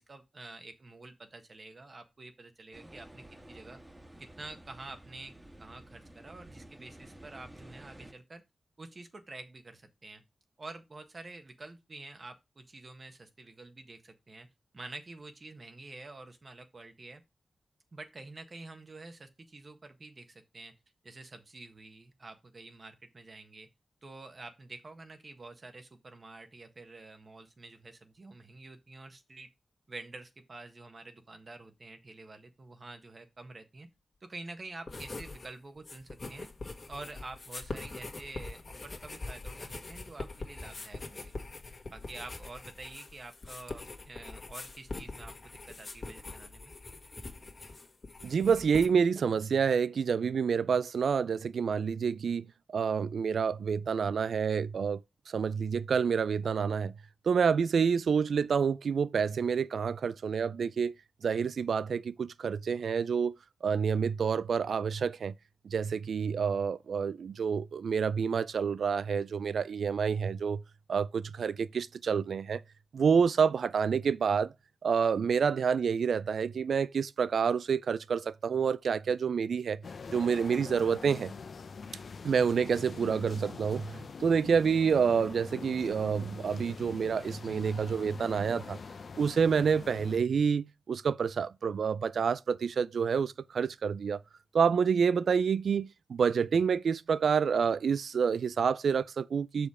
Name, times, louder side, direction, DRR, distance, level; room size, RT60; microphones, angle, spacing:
voice 1, 0.0-3.8 4.2-8.4 8.8-10.2 10.6-14.5 14.7-17.2 17.9-20.7 21.0-23.7 24.0-29.5 29.9-33.9 34.2-36.5 36.9-41.3 41.9-46.7, right 2 dB, 45° right, 1.5 m, -48 dB
sound 1, 2.7-8.1, right 1 dB, 20° right, 1.7 m, -52 dB
sound 2, 34.9-35.5 35.8-48.9, left 3 dB, 45° left, 1.7 m, -43 dB
voice 2, 48.2-55.0 55.3-56.9 57.2-60.9 61.2-63.4 63.6-65.3 65.6-70.6 70.9-72.6 72.9-74.5 74.8-79.8 80.1-81.3 82.2-88.8 89.2-94.2 94.5-99.7, right 6 dB, 80° right, 0.4 m, -28 dB
sound 3, 79.8-90.2, left 4 dB, 65° left, 0.7 m, -44 dB
6.8 x 5.2 x 4.8 m
cardioid pair, 75°, 0 cm